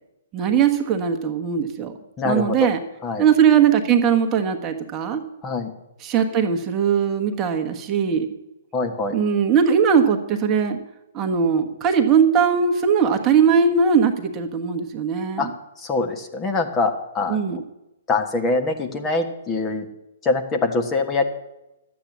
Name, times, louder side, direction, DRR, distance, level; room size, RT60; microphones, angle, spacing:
voice 1, 0.3-1.9 2.2-2.8 3.2-5.2 6.0-8.3 9.1-10.8 11.1-15.5 17.3-17.6, right 7 dB, 25° right, 4 dB, 1.3 m, -19 dB
voice 2, 2.2-2.7 3.0-3.2 5.4-5.7 8.7-9.2 15.4-15.5 15.8-17.4 18.1-19.9 20.2-21.2, left 3 dB, 20° left, 4 dB, 1.4 m, -23 dB
12.0 x 8.4 x 7.4 m, 0.94 s
hypercardioid pair, 125°, 0 cm